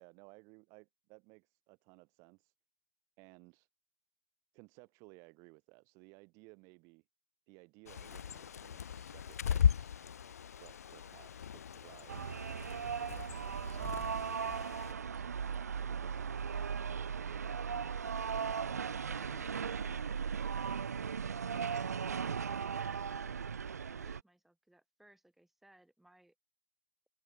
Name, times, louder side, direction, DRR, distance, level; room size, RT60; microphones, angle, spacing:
voice 1, 0.0-2.5 3.2-3.7 4.5-7.0 7.5-9.9 10.6-12.3 13.8-18.4, right 29 dB, 35° right, 1.8 m, -59 dB
Bird, 7.8-14.9, left 8 dB, 70° left, 0.8 m, -37 dB
sound 1, 12.1-24.2, right 6 dB, 75° right, 0.9 m, -37 dB
voice 2, 16.4-16.9 23.9-26.3, right 1 dB, ahead, 6.1 m, -63 dB
open air
figure-of-eight pair, 115°, 9 cm